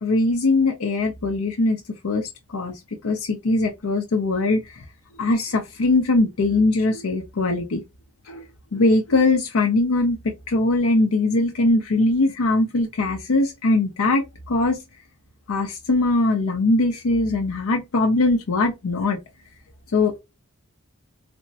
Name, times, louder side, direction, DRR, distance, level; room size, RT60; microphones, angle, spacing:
voice 1, 0.0-2.7 3.0-4.6 5.2-7.8 8.3-8.4 8.7-10.2 10.5-14.8 15.5-19.2 19.9-20.2, left 2 dB, 85° left, 0.6 m, -21 dB
3.4 x 2.0 x 2.6 m
head